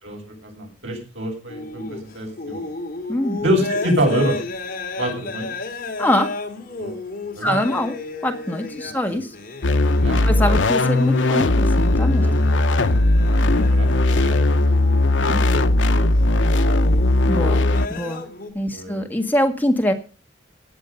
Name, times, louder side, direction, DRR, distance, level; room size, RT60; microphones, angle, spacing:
voice 1, 0.0-2.6 3.4-4.4 5.0-5.5 6.8-6.9 7.4-7.6 10.0-10.3 12.2-12.5 12.9-14.4 14.6-14.7 15.2-16.4 18.7-19.0, equal, 85° right, 1 dB, 7.4 m, -26 dB
sound 1, 1.5-18.5, left 3 dB, 45° left, 3.0 m, -33 dB
voice 2, 3.1-3.4 6.0-6.3 7.4-8.0 8.2-9.4 10.2-12.3 15.3-15.4 17.2-17.6 17.9-18.2 18.5-19.9, left 1 dB, 10° left, 4 dB, 1.7 m, -23 dB
sound 2, 9.6-17.9, left 2 dB, 70° left, 0.9 m, -18 dB
17.0 x 9.8 x 5.3 m, 0.33 s
head